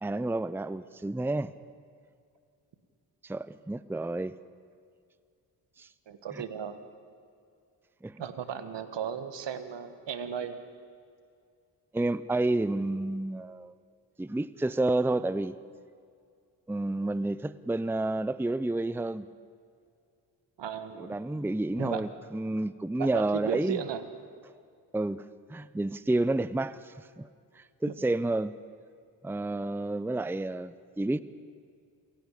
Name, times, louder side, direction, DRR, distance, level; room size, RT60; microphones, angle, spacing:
voice 1, 0.0-1.5 3.2-4.4 5.8-5.9 6.3-6.4 8.0-8.2 11.9-13.8 14.2-15.5 16.7-19.3 21.0-23.8 24.9-27.3 27.6-28.6 29.2-31.2, right 2 dB, 5° right, 16 dB, 0.7 m, -30 dB
voice 2, 6.1-6.8 8.2-10.6 20.6-21.2 21.8-22.0 23.0-24.0 27.9-28.0, right 8 dB, 65° right, 10 dB, 1.7 m, -35 dB
28.0 x 11.0 x 8.5 m, 2.3 s
hypercardioid pair, 40°, 46 cm